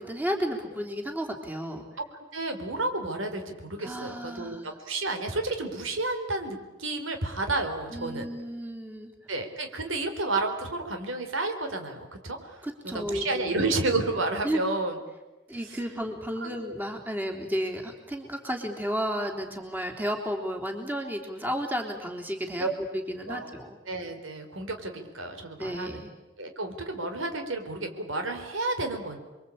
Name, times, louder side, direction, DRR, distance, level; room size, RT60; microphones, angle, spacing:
voice 1, 0.0-1.8 3.8-4.7 7.9-9.1 12.6-13.5 14.4-14.6 15.5-22.7 22.9-23.8 25.6-26.1, equal, 10° right, 2 dB, 3.4 m, -32 dB
voice 2, 2.3-8.3 9.3-15.0 15.6-15.8 16.4-16.5 22.6-22.7 23.3-23.5 23.9-26.0 26.4-29.2, right 2 dB, 90° right, 5 dB, 4.3 m, -31 dB
29.5 x 23.0 x 8.7 m, 1.1 s
head